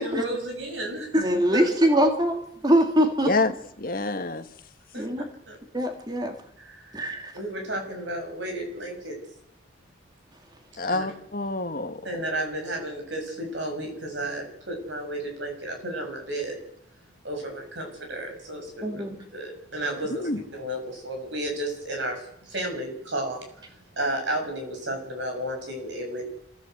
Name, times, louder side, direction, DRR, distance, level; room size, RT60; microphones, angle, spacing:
voice 1, 0.0-1.1 1.5-1.7 4.9-5.0 5.5-5.6 7.3-9.1 10.9-11.0 12.0-16.6 17.2-19.0 19.3-20.2 20.5-20.8 21.0-22.2 22.5-23.4 24.0-26.2, right 1 dB, 85° right, 3 dB, 7.1 m, -32 dB
voice 2, 1.1-3.3 4.9-5.3 5.7-6.3 6.9-7.3 18.8-19.2, equal, 20° right, 4 dB, 2.5 m, -23 dB
voice 3, 3.8-4.5 10.8-12.0 20.2-20.4, left 3 dB, 50° left, 8 dB, 1.6 m, -27 dB
26.5 x 15.5 x 8.0 m, 0.73 s
head